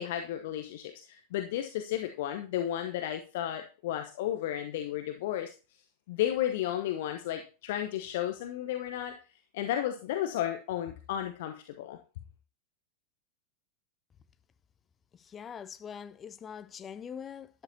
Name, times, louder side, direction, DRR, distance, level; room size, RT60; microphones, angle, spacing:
voice 1, 0.0-5.5 6.1-9.2 9.5-12.0, left 11 dB, 55° left, 0.9 m, -33 dB
voice 2, 15.1-17.6, left 7 dB, 25° left, 0.6 m, -43 dB
11.5 x 11.0 x 2.8 m
figure-of-eight pair, 90°, 0 cm